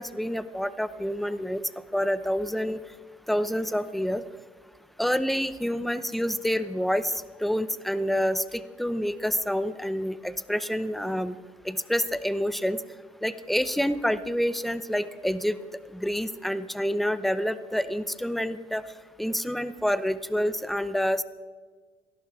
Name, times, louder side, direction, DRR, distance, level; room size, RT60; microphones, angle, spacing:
voice 1, 0.0-1.6 1.9-2.8 3.3-4.2 5.0-11.4 11.6-12.8 13.2-15.6 15.9-18.8 19.2-21.2, equal, ahead, 13 dB, 0.7 m, -28 dB
29.5 x 12.0 x 3.6 m, 1.5 s
cardioid pair, 110°, 17 cm